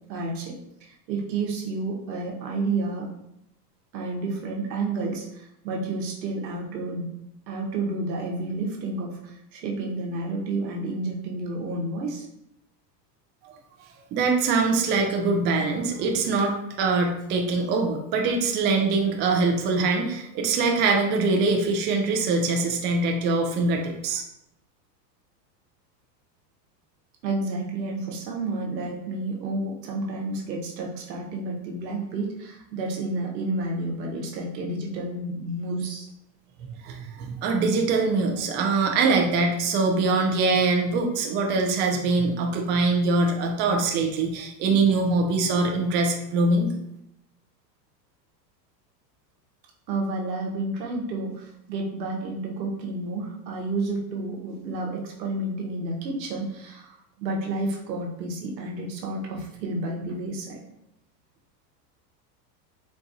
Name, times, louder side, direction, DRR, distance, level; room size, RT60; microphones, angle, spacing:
voice 1, 0.1-0.5 0.8-3.1 3.9-7.1 7.5-12.3 27.2-36.1 49.9-60.6, right 2 dB, 85° right, 0 dB, 1.0 m, -30 dB
voice 2, 14.1-24.2 36.8-46.7, right 3 dB, 25° right, 2 dB, 0.3 m, -23 dB
4.1 x 2.3 x 2.6 m, 0.79 s
hypercardioid pair, 105°, 50 cm